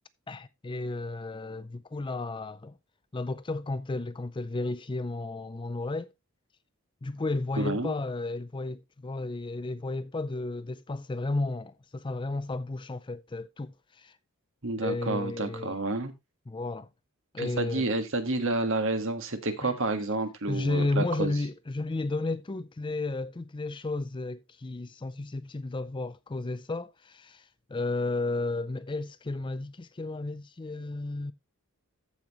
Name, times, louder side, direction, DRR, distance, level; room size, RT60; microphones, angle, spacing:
voice 1, 0.3-2.8 3.1-6.1 7.0-14.2 14.8-15.8 16.5-16.9 17.3-17.9 19.6-19.7 20.5-31.3, left 2 dB, 20° left, 0.4 m, -33 dB
voice 2, 7.6-7.9 14.6-16.1 17.4-21.3, right 2 dB, 60° right, 1.6 m, -29 dB
14.5 x 5.6 x 3.0 m
head